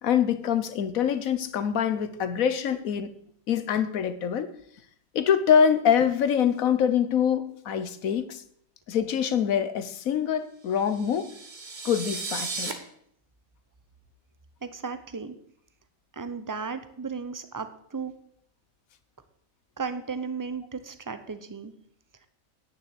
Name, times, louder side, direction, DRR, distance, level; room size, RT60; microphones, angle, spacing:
voice 1, 0.0-3.1 3.5-4.5 5.1-8.4 8.9-11.3 11.8-12.7, left 8 dB, 75° left, 12 dB, 1.4 m, -24 dB
sound 1, 10.8-12.7, right 3 dB, 35° right, 1.3 m, -35 dB
voice 2, 14.6-15.3 16.1-18.1 19.8-21.7, right 5 dB, 20° right, 11 dB, 0.6 m, -35 dB
9.6 x 6.9 x 8.1 m, 0.67 s
omnidirectional pair, 1.5 m